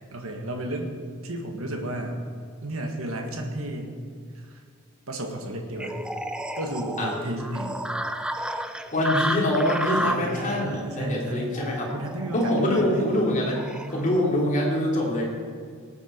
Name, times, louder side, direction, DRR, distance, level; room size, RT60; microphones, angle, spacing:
voice 1, 0.1-0.9 1.2-2.2 2.6-4.0 4.4-4.6 5.1-6.0 6.6-7.8 10.0-11.5 11.9-13.1, right 1 dB, 70° right, 2 dB, 1.8 m, -33 dB
sound 1, 5.8-14.0, right 1 dB, 5° right, 0.5 m, -32 dB
voice 2, 8.9-11.9 12.3-13.6 13.9-15.2, left 1 dB, 35° left, -3 dB, 3.2 m, -24 dB
19.5 x 9.1 x 4.6 m, 2.1 s
head